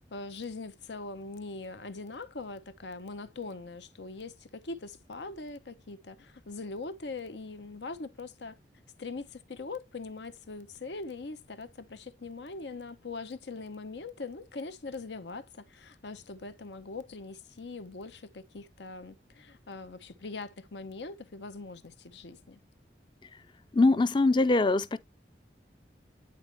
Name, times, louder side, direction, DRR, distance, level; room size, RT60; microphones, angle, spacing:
voice 1, 0.1-8.6 9.0-22.6, left 3 dB, 80° left, 0.8 m, -42 dB
voice 2, 23.7-25.0, left 2 dB, 25° left, 0.5 m, -23 dB
9.7 x 4.2 x 2.9 m
head